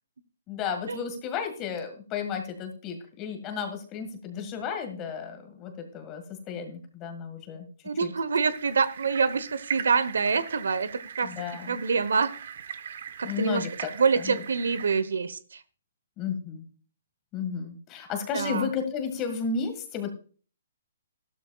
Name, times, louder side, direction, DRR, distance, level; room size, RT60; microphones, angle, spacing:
voice 1, 0.5-7.7 8.0-8.1 11.2-11.8 13.2-13.9 14.2-14.4 16.2-16.6 17.3-20.1, left 6 dB, 25° left, 5 dB, 1.7 m, -33 dB
voice 2, 7.8-10.9 11.2-11.3 11.7-12.3 13.2-13.7 13.9-15.6 18.3-18.7, right 5 dB, 85° right, 15 dB, 0.9 m, -26 dB
sound 1, 8.5-15.0, right 8 dB, 60° right, 1.0 m, -40 dB
13.5 x 12.5 x 2.3 m, 0.40 s
hypercardioid pair, 155°, 0 cm